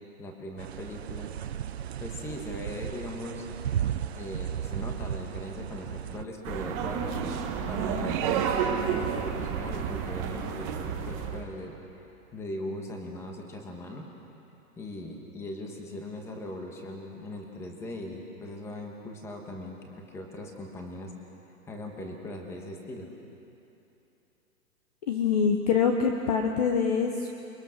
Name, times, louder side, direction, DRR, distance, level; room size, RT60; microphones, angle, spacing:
voice 1, 0.2-1.3 2.0-3.5 4.1-7.4 7.7-14.1 14.8-21.1 21.7-23.1, left 1 dB, 5° left, 1 dB, 1.3 m, -39 dB
sound 1, 0.6-6.2, right 9 dB, 45° right, 0.6 m, -35 dB
sound 2, 6.4-11.4, right 7 dB, 15° right, 1.1 m, -30 dB
voice 2, 25.1-27.3, left 6 dB, 25° left, 4 dB, 0.9 m, -25 dB
28.0 x 22.0 x 6.4 m, 3.0 s
hypercardioid pair, 170°, 45 cm